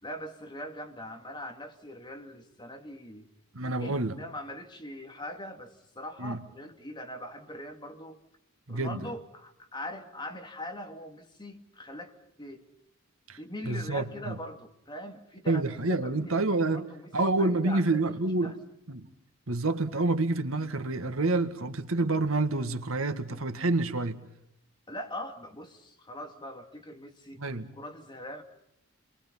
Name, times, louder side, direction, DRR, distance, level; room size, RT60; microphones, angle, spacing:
voice 1, 0.0-3.3 3.7-8.2 8.7-12.7 13.4-18.6 24.9-27.4 27.7-28.4, left 1 dB, 20° left, 2.8 m, -42 dB
voice 2, 3.5-4.1 6.2-6.4 8.7-9.0 13.3-13.4 13.7-14.4 15.5-16.9 17.1-18.5 18.9-19.1 19.5-24.2 27.4-27.7, right 2 dB, 85° right, 1.9 m, -28 dB
29.5 x 23.0 x 5.6 m
head